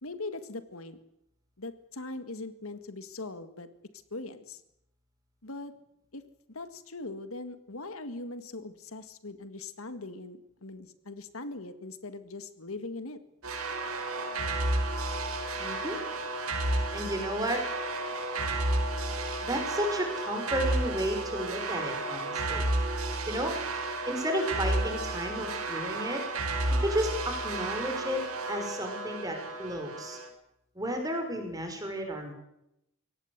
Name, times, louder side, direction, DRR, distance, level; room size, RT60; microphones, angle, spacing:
voice 1, 0.0-1.0 1.6-3.7 4.1-4.6 5.4-5.7 6.1-6.2 6.5-13.2, left 2 dB, 75° left, 11 dB, 1.9 m, -40 dB
sound 1, 13.4-30.3, right 2 dB, 80° right, 5.0 m, -32 dB
voice 2, 15.6-16.0 16.9-17.6 19.4-22.7 23.3-23.6 24.1-26.2 26.8-30.2 30.8-32.3, equal, 15° right, 4 dB, 5.9 m, -32 dB
24.0 x 18.0 x 8.2 m, 0.82 s
head